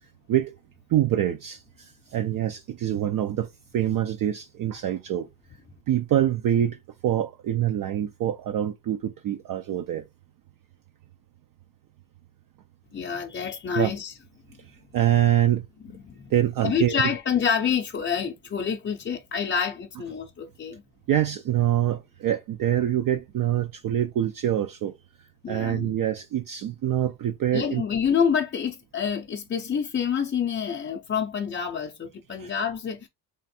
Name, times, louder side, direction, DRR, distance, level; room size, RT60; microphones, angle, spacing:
voice 1, 0.9-5.3 5.9-6.8 7.0-10.0 13.8-13.9 14.6-15.7 16.3-17.0 21.1-24.9 25.5-27.8 32.4-32.5, right 11 dB, 55° right, 0.5 m, -25 dB
voice 2, 12.9-14.1 15.8-16.3 16.6-20.8 25.4-25.9 27.5-33.1, left 7 dB, 30° left, 0.5 m, -27 dB
3.5 x 2.5 x 4.1 m
cardioid pair, 115°, 42 cm